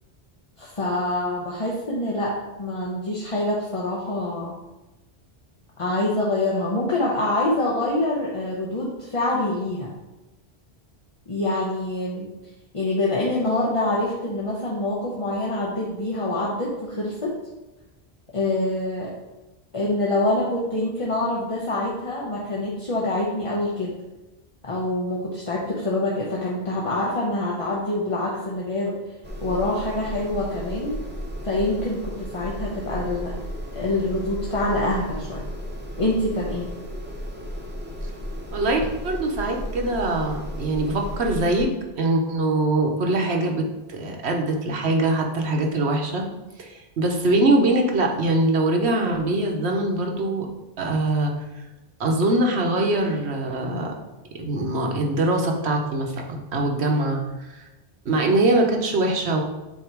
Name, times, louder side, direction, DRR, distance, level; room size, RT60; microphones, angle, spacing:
voice 1, 0.6-4.5 5.8-9.9 11.3-12.3 12.7-17.3 18.3-19.1 19.7-23.9 24.6-29.0 29.4-31.0 31.4-33.3 33.7-35.4 36.0-36.7, left 2 dB, 35° left, -5 dB, 0.9 m, -25 dB
sound 1, 29.2-41.6, equal, 10° right, 0.8 m, -34 dB
voice 2, 38.5-41.7 42.0-46.2 46.6-50.5 50.8-51.3 52.0-53.9 54.4-57.2 57.5-57.7 58.0-59.4, right 2 dB, 80° right, 2 dB, 1.2 m, -23 dB
8.2 x 2.9 x 4.6 m, 1.0 s
omnidirectional pair, 1.1 m